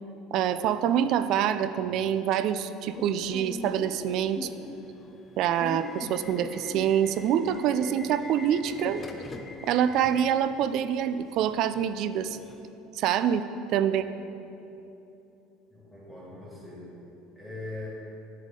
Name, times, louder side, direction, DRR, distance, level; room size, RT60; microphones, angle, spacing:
voice 1, 0.3-4.5 5.4-9.0 9.6-12.4 12.9-13.5 13.7-14.0, right 9 dB, 55° right, 12 dB, 0.3 m, -26 dB
Subway metro underground / Alarm, 2.9-12.7, left 3 dB, 20° left, 0.5 m, -42 dB
voice 2, 15.7-16.9 17.3-17.9, left 2 dB, 5° left, -6 dB, 1.6 m, -41 dB
8.2 x 7.4 x 3.7 m, 2.9 s
cardioid pair, 145°, 0 cm